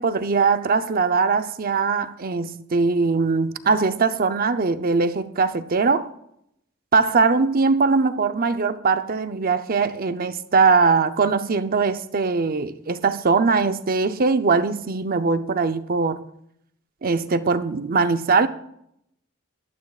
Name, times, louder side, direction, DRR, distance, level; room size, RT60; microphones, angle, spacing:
voice 1, 0.0-6.1 6.9-16.2 17.0-18.5, right 4 dB, 45° right, 0.6 m, -21 dB
19.0 x 11.5 x 2.4 m
head